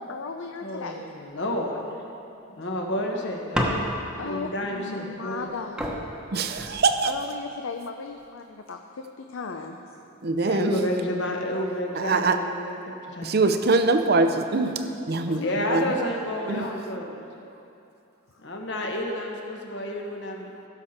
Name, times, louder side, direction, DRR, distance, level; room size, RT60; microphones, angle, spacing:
voice 1, 0.0-1.0 4.2-5.9 7.0-9.8 15.3-15.5, left 4 dB, 80° left, 4 dB, 0.5 m, -36 dB
voice 2, 0.6-1.8 2.6-3.8 4.1-5.5 10.3-13.4 15.4-17.2 18.4-20.7, left 1 dB, 60° left, 0 dB, 1.3 m, -30 dB
sound 1, 3.5-4.3 5.4-5.5 5.8-7.3 8.0-8.4, equal, 5° right, 1.0 m, -30 dB
voice 3, 6.3-7.1 10.2-10.8 12.0-12.4 13.2-14.8 15.1-15.4 15.7-15.8 16.5-16.6, right 3 dB, 50° right, 7 dB, 0.6 m, -23 dB
15.5 x 6.7 x 4.3 m, 2.6 s
head